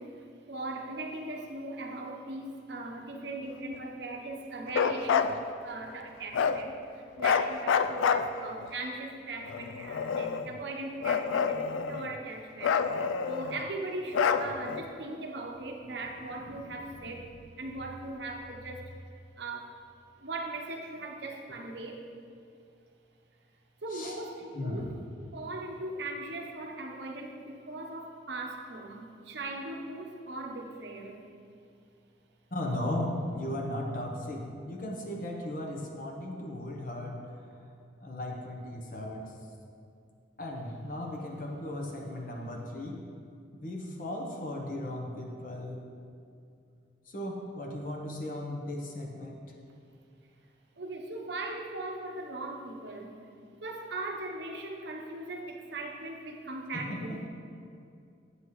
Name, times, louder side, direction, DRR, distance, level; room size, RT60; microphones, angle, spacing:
voice 1, 0.0-17.3 17.6-18.9 19.4-19.7 20.2-22.0 23.8-25.0 25.3-31.3 50.8-53.1 53.6-57.3, right 2 dB, 65° right, 1 dB, 0.8 m, -39 dB
Bark, 4.7-5.3 6.3-6.6 7.2-8.7 9.5-10.5 11.0-12.1 12.6-13.6 14.1-14.8, left 6 dB, 90° left, 0.3 m, -28 dB
voice 2, 24.5-24.9 32.5-37.6 38.0-39.3 40.4-43.0 43.6-45.8 47.1-49.5 56.7-57.2, left 1 dB, 45° left, 0 dB, 0.8 m, -36 dB
8.0 x 7.9 x 3.1 m, 2.4 s
head